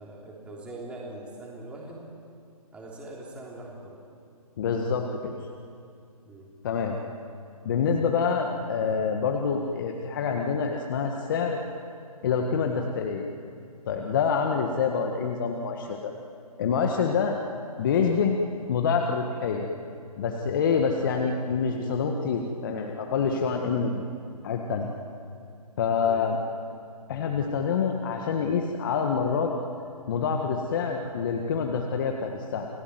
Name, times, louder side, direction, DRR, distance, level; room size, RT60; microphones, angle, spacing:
voice 1, 0.0-2.0 2.7-4.0 6.3-6.5 26.0-26.3, right 2 dB, 5° right, -3 dB, 3.4 m, -42 dB
voice 2, 4.6-5.3 6.6-7.0 7.6-11.6 12.2-13.2 13.8-16.1 16.6-17.4 17.8-18.4 18.7-19.7 20.2-24.1 24.4-24.9 25.8-26.4 27.1-29.5 30.1-32.7, left 6 dB, 35° left, 2 dB, 1.7 m, -26 dB
29.5 x 18.0 x 9.5 m, 2.4 s
hypercardioid pair, 160°, 20 cm